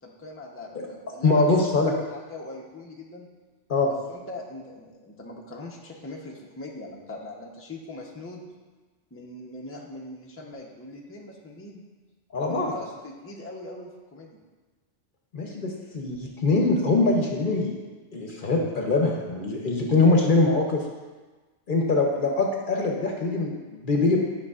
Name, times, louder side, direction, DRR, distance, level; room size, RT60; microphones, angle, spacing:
voice 1, 0.0-1.6 1.9-3.3 4.1-8.4 9.1-11.8 12.5-14.4, left 2 dB, 15° left, -2 dB, 0.7 m, -41 dB
voice 2, 1.2-1.9 3.7-3.9 12.3-12.7 15.3-17.8 18.1-20.8 21.7-24.2, left 3 dB, 50° left, 0 dB, 0.9 m, -23 dB
10.5 x 5.8 x 2.4 m, 1.3 s
omnidirectional pair, 1.1 m